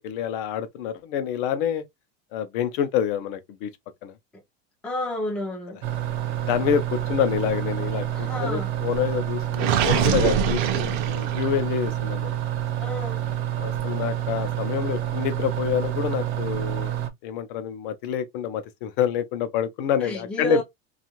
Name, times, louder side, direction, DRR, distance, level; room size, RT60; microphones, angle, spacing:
voice 1, 0.0-1.8 2.3-3.7 4.0-4.1 6.4-12.4 13.6-17.0 17.2-20.6, left 9 dB, 55° left, 0.6 m, -27 dB
voice 2, 4.8-5.8 8.1-8.7 12.8-13.2 20.0-20.6, left 1 dB, 5° left, 0.4 m, -30 dB
sound 1, 5.8-17.1, right 11 dB, 75° right, 0.9 m, -28 dB
Gurgling, 9.5-11.7, right 8 dB, 50° right, 0.5 m, -24 dB
2.6 x 2.4 x 2.9 m
supercardioid pair, 175°, 31 cm